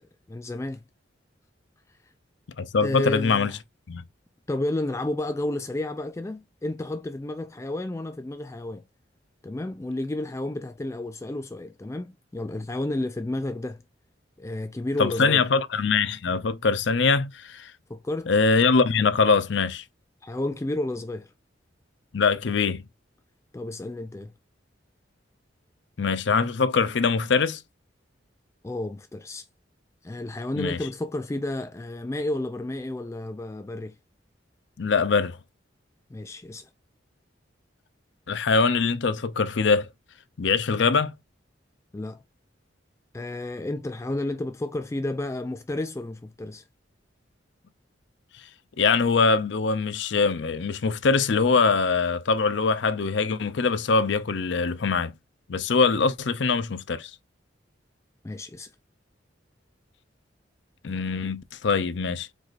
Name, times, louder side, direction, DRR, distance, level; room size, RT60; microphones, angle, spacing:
voice 1, 0.3-0.8 2.8-3.6 4.5-8.8 9.4-13.8 14.4-15.4 17.9-18.3 20.2-21.3 23.5-24.3 28.6-29.5 30.0-34.0 36.1-36.7 41.9-42.2 43.1-46.6 58.2-58.7, left 1 dB, 15° left, 0.3 m, -31 dB
voice 2, 2.6-3.5 3.9-4.0 15.0-17.7 18.3-19.8 22.1-22.8 26.0-27.6 30.6-30.8 34.8-35.4 38.3-39.9 40.4-41.1 48.8-55.1 55.5-57.1 60.8-62.3, left 4 dB, 70° left, 0.5 m, -23 dB
4.7 x 2.5 x 4.0 m
head